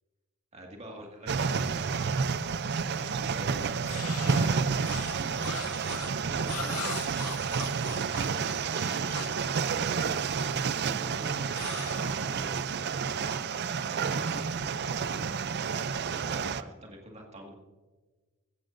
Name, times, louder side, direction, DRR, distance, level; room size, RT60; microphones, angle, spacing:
voice 1, 0.5-2.1 2.9-4.2 5.8-6.8 7.3-7.6 8.3-9.8 10.3-12.8 13.2-13.5 13.8-15.2 16.1-17.5, right 1 dB, 30° right, 1 dB, 1.9 m, -47 dB
sound 1, 1.3-16.6, right 5 dB, 50° right, 0.4 m, -30 dB
sound 2, 3.8-9.5 11.5-12.7, left 7 dB, 90° left, 1.0 m, -41 dB
15.5 x 15.5 x 2.6 m, 1.3 s
head